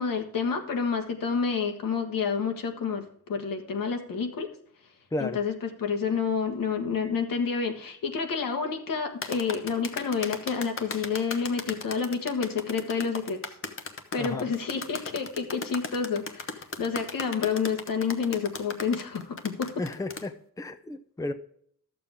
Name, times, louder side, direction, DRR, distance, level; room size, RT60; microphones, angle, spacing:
voice 1, 0.0-4.5 5.2-13.5 14.1-19.9, left 5 dB, 85° left, 6 dB, 1.6 m, -29 dB
sound 1, 9.2-20.3, left 4 dB, 40° left, 0.9 m, -37 dB
voice 2, 19.8-20.3 20.6-21.3, left 2 dB, 10° left, 8 dB, 0.6 m, -32 dB
13.0 x 7.0 x 3.6 m, 0.64 s
wide cardioid pair, 155°, 33 cm